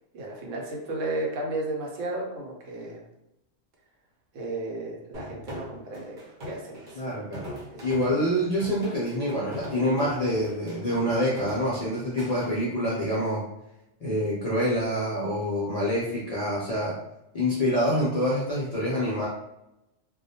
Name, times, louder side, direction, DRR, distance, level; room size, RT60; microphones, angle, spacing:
voice 1, 0.1-3.0 4.3-7.0, right 2 dB, 85° right, -1 dB, 1.0 m, -33 dB
sound 1, 5.1-12.5, left 1 dB, 45° right, 0.8 m, -41 dB
voice 2, 6.9-7.5 7.8-13.4 14.0-17.0 17.3-19.3, equal, 55° left, -7 dB, 0.4 m, -26 dB
2.2 x 2.1 x 2.7 m, 0.89 s
omnidirectional pair, 1.3 m